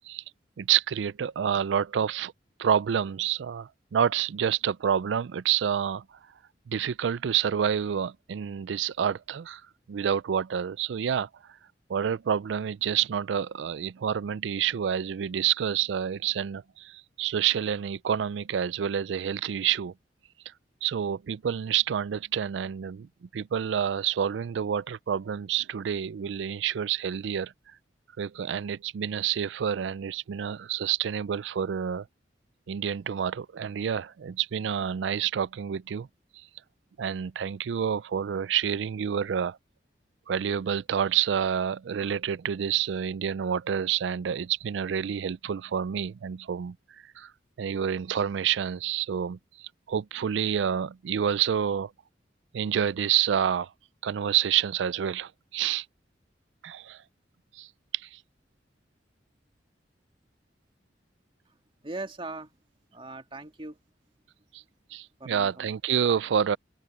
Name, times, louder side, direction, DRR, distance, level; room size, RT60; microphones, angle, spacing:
voice 1, 0.6-2.3 2.6-6.0 6.7-9.6 9.9-11.3 11.9-19.9 20.8-27.5 28.2-32.1 32.7-36.1 37.0-39.6 40.3-46.8 47.2-47.3 47.6-51.9 52.5-53.7 54.0-55.9 56.6-57.0 57.5-57.7 57.9-58.2 64.5-64.6 64.9-66.6, right 8 dB, 75° right, 0.4 m, -28 dB
voice 2, 61.8-62.5 62.9-63.8 65.2-65.7, right 2 dB, 30° right, 2.1 m, -39 dB
open air
head